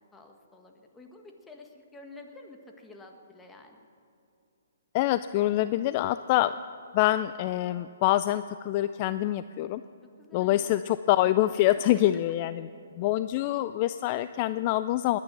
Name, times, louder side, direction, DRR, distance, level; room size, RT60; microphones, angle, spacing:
voice 1, 0.1-3.8 10.0-10.7 11.9-12.0, left 2 dB, 10° left, 3 dB, 1.5 m, -50 dB
voice 2, 4.9-6.5 6.9-9.8 10.3-12.7 13.0-15.2, left 14 dB, 35° left, 13 dB, 0.3 m, -25 dB
20.5 x 9.6 x 6.1 m, 2.7 s
hypercardioid pair, 140°, 0 cm